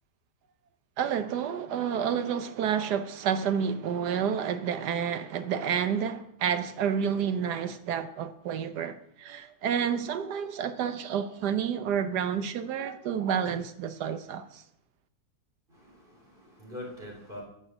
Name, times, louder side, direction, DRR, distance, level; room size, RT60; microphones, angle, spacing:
voice 1, 1.0-14.6, right 8 dB, 80° right, 1.4 m, -30 dB
voice 2, 15.7-17.4, left 1 dB, 30° right, 3.9 m, -43 dB
14.0 x 6.7 x 6.2 m
omnidirectional pair, 1.7 m